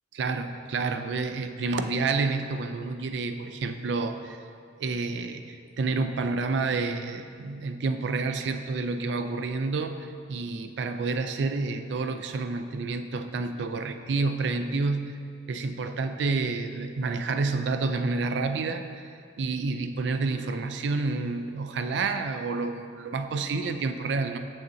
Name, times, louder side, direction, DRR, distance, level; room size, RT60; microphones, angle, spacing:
voice 1, 0.1-4.4 4.8-15.1 15.5-18.8 19.4-24.4, right 3 dB, 75° right, 8 dB, 0.4 m, -29 dB
6.9 x 6.5 x 2.7 m, 2.3 s
head